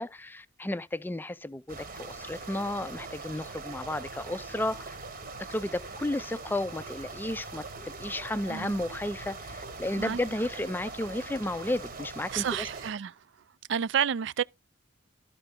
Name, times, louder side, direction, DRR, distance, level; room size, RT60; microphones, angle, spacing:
voice 1, 0.0-5.0 5.5-12.7, left 1 dB, 10° left, 0.4 m, -33 dB
sound 1, 1.7-12.9, right 3 dB, 50° right, 1.3 m, -42 dB
voice 2, 8.5-8.8 10.0-10.2 12.3-13.2 13.7-14.4, right 8 dB, 70° right, 0.4 m, -30 dB
13.5 x 4.5 x 3.7 m
head